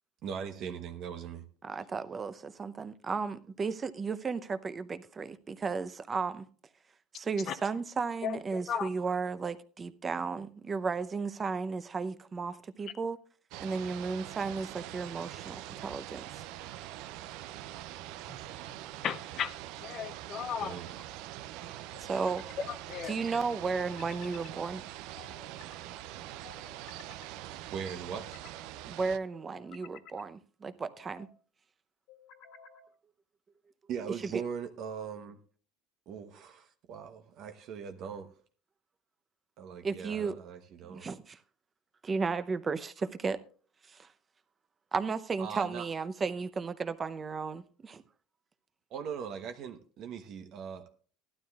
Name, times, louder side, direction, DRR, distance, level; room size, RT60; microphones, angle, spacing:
voice 1, 0.2-1.4 20.6-20.9 27.7-28.3 33.9-35.4 36.1-38.3 39.6-41.0 45.4-45.9 48.9-50.9, right 7 dB, 55° right, 1.0 m, -40 dB
voice 2, 1.6-6.4 7.1-13.2 13.6-16.4 22.0-22.4 23.1-24.8 28.9-31.3 39.8-40.3 40.8-41.4 42.0-43.4 43.9-44.1 44.9-48.0, right 4 dB, 25° right, 0.7 m, -34 dB
sound 1, 13.5-29.2, right 14 dB, 70° right, 0.5 m, -44 dB
sound 2, 18.3-18.9 20.3-21.1 21.9-22.7 23.8-24.5 25.1-25.8 26.4-27.3 27.9-28.6 29.3-30.2 30.8-31.3 32.1-32.9, left 7 dB, 70° left, 1.9 m, -54 dB
voice 3, 19.0-19.5 19.8-20.8 22.6-23.1, left 8 dB, 45° left, 0.6 m, -35 dB
16.5 x 12.0 x 2.4 m
supercardioid pair, 125°, 0 cm